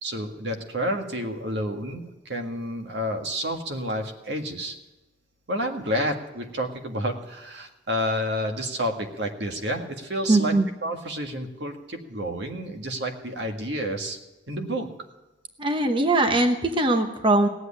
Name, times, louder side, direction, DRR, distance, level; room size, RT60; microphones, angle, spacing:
voice 1, 0.0-4.8 5.5-10.5 10.8-14.2 14.5-14.9, equal, 80° right, 4 dB, 1.7 m, -30 dB
voice 2, 10.3-10.7 15.6-17.5, right 2 dB, 30° right, 6 dB, 0.9 m, -21 dB
17.5 x 8.0 x 9.9 m, 1.1 s
head